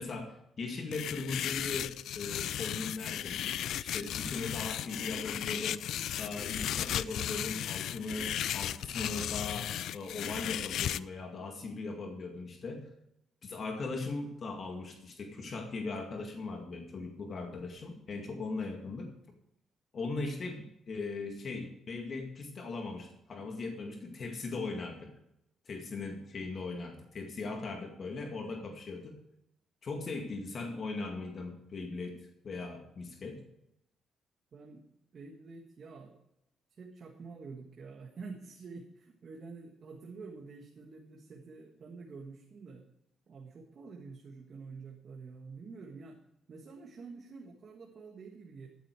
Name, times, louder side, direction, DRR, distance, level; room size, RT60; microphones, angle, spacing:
voice 1, 0.0-3.5 3.8-5.8 6.2-12.9 13.4-19.1 19.9-25.1 25.7-29.2 29.8-33.4, left 3 dB, 50° left, 3 dB, 2.1 m, -39 dB
sound 1, 0.9-11.0, left 11 dB, 75° left, 0.3 m, -35 dB
voice 2, 34.5-34.9 35.1-36.2 36.7-42.9 43.3-46.2 46.5-48.7, right 4 dB, 50° right, 1 dB, 1.6 m, -48 dB
13.5 x 9.1 x 4.7 m, 0.83 s
cardioid pair, 90°, 0 cm